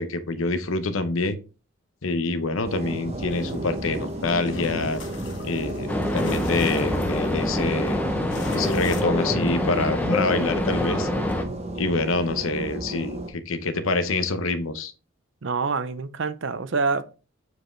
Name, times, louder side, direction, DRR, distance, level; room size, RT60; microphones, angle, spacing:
voice 1, 0.0-1.4 2.0-5.0 5.4-8.0 8.5-11.1 11.7-14.9, left 3 dB, 75° left, 0.8 m, -26 dB
sound 1, 2.6-13.3, right 1 dB, 30° right, 0.8 m, -33 dB
sound 2, 3.3-9.0, left 4 dB, 55° left, 1.3 m, -44 dB
sound 3, 5.9-11.4, left 1 dB, 5° left, 0.7 m, -26 dB
voice 2, 15.4-17.2, right 4 dB, 60° right, 0.6 m, -27 dB
7.5 x 4.7 x 3.2 m
head